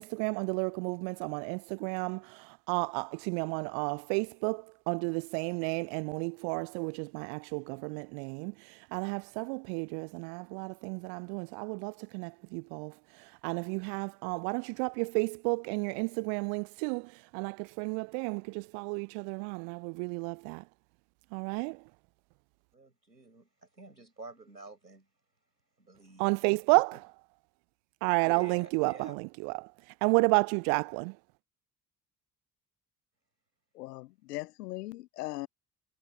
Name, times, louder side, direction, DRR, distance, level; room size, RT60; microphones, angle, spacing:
voice 1, 0.0-20.6 21.3-21.8 26.2-27.0 28.0-29.7 30.0-31.1, right 40 dB or more, 55° right, 0.6 m, -32 dB
voice 2, 22.7-25.1 25.8-26.2 26.5-26.6 26.9-27.0 28.2-29.2, right 3 dB, 90° right, 6.3 m, -50 dB
voice 3, 33.8-35.5, left 18 dB, 70° left, 0.9 m, -39 dB
figure-of-eight pair, 50°, 49 cm